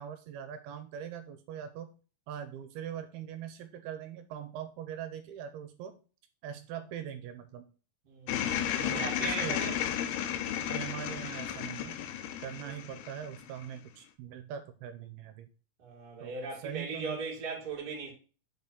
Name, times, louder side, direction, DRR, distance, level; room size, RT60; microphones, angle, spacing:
voice 1, 0.0-1.9 2.3-6.0 6.4-7.6 8.8-9.8 10.7-12.0 12.4-15.5 16.2-16.3 16.6-17.2, right 9 dB, 80° right, 2.5 m, -42 dB
voice 2, 8.0-8.4 8.8-9.8 12.6-12.7 15.8-18.1, right 4 dB, 30° right, 2.0 m, -38 dB
sound 1, 8.3-13.7, left 10 dB, 85° left, 2.8 m, -33 dB
6.3 x 4.5 x 5.2 m
omnidirectional pair, 4.6 m